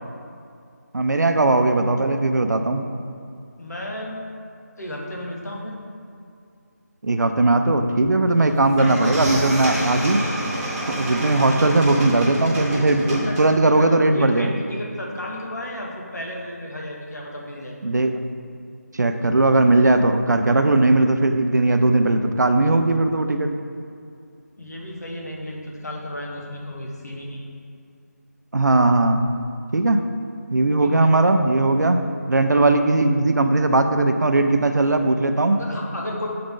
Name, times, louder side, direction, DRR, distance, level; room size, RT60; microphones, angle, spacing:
voice 1, 0.9-2.9 7.0-10.2 10.9-14.5 17.8-18.2 18.9-23.6 28.5-29.3 29.7-30.0 30.5-32.0 32.3-35.6, right 2 dB, 85° right, 7 dB, 0.5 m, -18 dB
voice 2, 3.6-4.2 4.8-5.8 12.0-12.1 12.3-17.8 24.6-27.4 30.8-31.1 35.5-36.3, left 1 dB, 70° left, -2 dB, 1.3 m, -33 dB
sound 1, 8.4-8.5 8.8-13.7, right 1 dB, 5° right, 0.6 m, -28 dB
7.6 x 3.9 x 3.7 m, 2.4 s
figure-of-eight pair, 175°, 9 cm